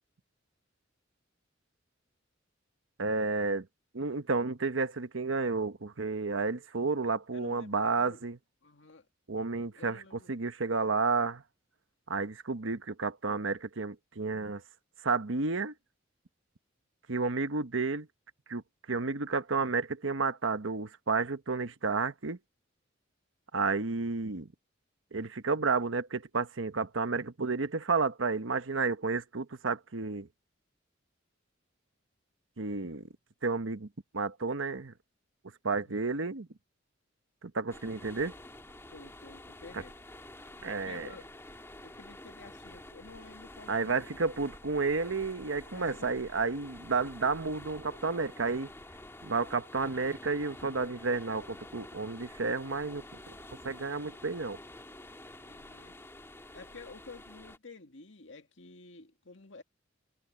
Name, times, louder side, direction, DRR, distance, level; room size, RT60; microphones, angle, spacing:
voice 1, 3.0-3.7 3.9-8.4 9.3-10.0 10.3-11.4 12.1-14.6 15.0-15.7 17.1-18.1 18.5-18.6 18.9-22.4 23.5-24.5 25.1-30.3 32.6-33.1 33.4-33.9 34.1-34.9 35.6-36.5 37.4-38.3 40.6-41.1 43.7-48.7 49.2-53.0 53.6-54.6, right 4 dB, 80° right, 1.1 m, -31 dB
voice 2, 7.3-8.2 8.6-9.1 9.8-10.3 10.7-10.9 35.7-36.1 38.9-40.0 40.7-41.3 41.8-44.1 45.7-46.2 55.4-56.0 56.5-59.6, left 3 dB, 70° left, 2.1 m, -51 dB
sound 1, 37.7-57.6, left 1 dB, 15° left, 2.2 m, -49 dB
head